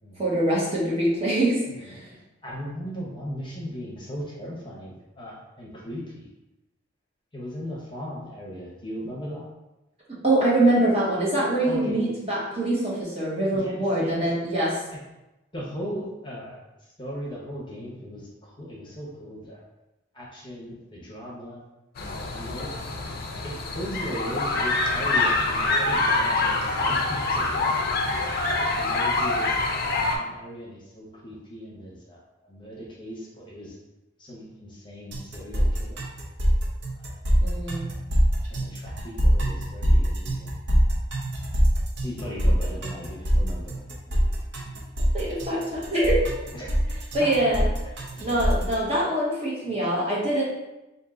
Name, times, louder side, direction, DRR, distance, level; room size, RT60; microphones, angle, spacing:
voice 1, 0.2-2.1 10.2-14.8 37.4-37.9 45.1-46.4 47.1-47.7 48.2-50.4, right 1 dB, 30° right, -7 dB, 1.0 m, -24 dB
voice 2, 1.7-2.0 2.4-6.3 7.3-9.4 11.6-12.0 13.5-14.3 15.5-19.6 20.1-21.6 22.3-22.7 23.4-27.7 28.7-29.6 30.0-33.8 34.2-36.0 36.9-37.1 38.4-40.5 42.0-44.2 46.5-47.5 48.0-48.5, equal, 25° left, -5 dB, 0.8 m, -38 dB
sound 1, 22.0-30.2, left 2 dB, 50° left, 0.5 m, -25 dB
sound 2, 35.1-48.7, equal, 60° right, 0.7 m, -24 dB
3.5 x 2.7 x 3.7 m, 0.98 s
head